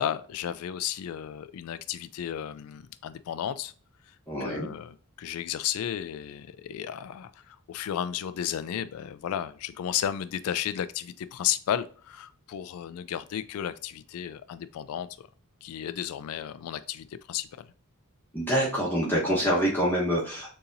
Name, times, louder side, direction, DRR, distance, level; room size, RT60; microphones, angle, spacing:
voice 1, 0.0-3.7 4.1-4.2 4.4-15.3 15.6-17.7, left 10 dB, 70° left, 0.3 m, -33 dB
voice 2, 4.3-4.7 18.3-20.5, equal, 10° left, 1.0 m, -26 dB
6.7 x 2.8 x 2.5 m
head